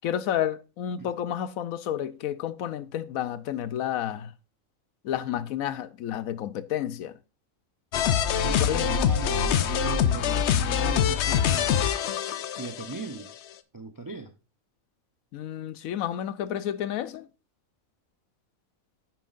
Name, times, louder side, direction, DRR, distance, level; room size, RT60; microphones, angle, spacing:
voice 1, 0.0-4.3 5.0-7.2 8.6-8.9 15.3-17.3, left 10 dB, 85° left, 1.1 m, -31 dB
sound 1, 7.9-13.0, left 8 dB, 65° left, 0.8 m, -24 dB
voice 2, 8.4-12.1 12.6-13.3 13.7-14.3, right 3 dB, 30° right, 0.4 m, -38 dB
9.1 x 9.0 x 2.5 m
omnidirectional pair, 1.4 m